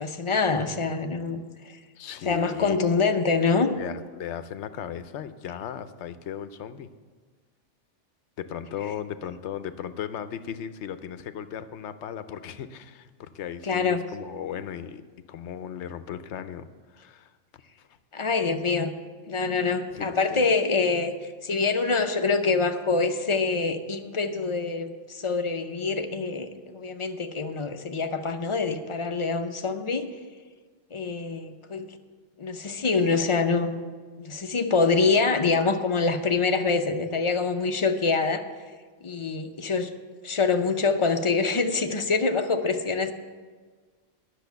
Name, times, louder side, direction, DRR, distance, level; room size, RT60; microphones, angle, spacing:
voice 1, 0.0-1.8 2.2-3.7 13.6-14.0 18.1-18.9 19.3-30.1 30.9-32.0 32.4-33.8 34.2-38.4 39.0-39.9 40.2-43.1, left 4 dB, 35° left, 6 dB, 0.5 m, -25 dB
voice 2, 2.0-2.9 3.7-6.9 8.4-15.0 15.3-17.3 17.8-17.9 19.9-20.5, left 9 dB, 70° left, 12 dB, 0.9 m, -37 dB
10.5 x 6.5 x 7.9 m, 1.5 s
omnidirectional pair, 1.3 m